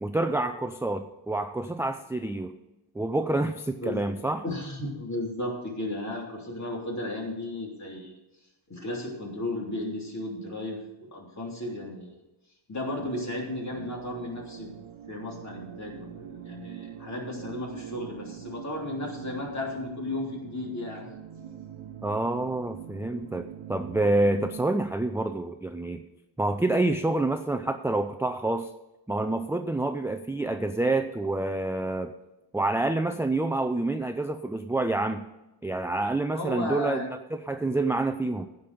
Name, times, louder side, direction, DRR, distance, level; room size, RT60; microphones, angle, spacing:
voice 1, 0.0-2.5 2.9-4.4 22.0-26.0 26.4-28.7 29.1-32.1 32.5-35.2 35.6-37.1 37.4-38.5, right 2 dB, 5° right, 7 dB, 0.3 m, -27 dB
voice 2, 3.8-4.1 4.4-8.1 8.7-12.1 12.7-14.7 15.1-21.1 36.3-37.1, left 1 dB, 35° left, -2 dB, 3.2 m, -34 dB
sound 1, 13.0-24.8, right 9 dB, 80° right, 0.9 m, -44 dB
15.5 x 5.3 x 6.8 m, 0.96 s
wide cardioid pair, 160°, 48 cm